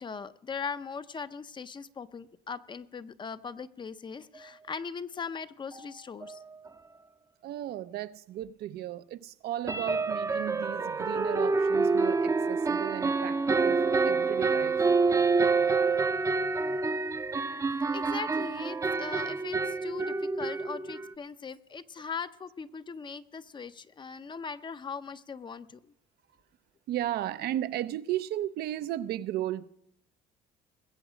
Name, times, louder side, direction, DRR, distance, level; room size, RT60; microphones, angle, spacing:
voice 1, 0.0-6.4 17.9-25.8, left 5 dB, 30° left, 0.6 m, -40 dB
sound 1, 5.7-5.8 6.2-6.4 6.7-6.8 9.7-21.1, right 4 dB, 20° right, 0.6 m, -27 dB
voice 2, 7.4-14.8 26.9-29.7, right 13 dB, 70° right, 0.6 m, -35 dB
21.0 x 8.0 x 5.0 m
cardioid pair, 110°, 17 cm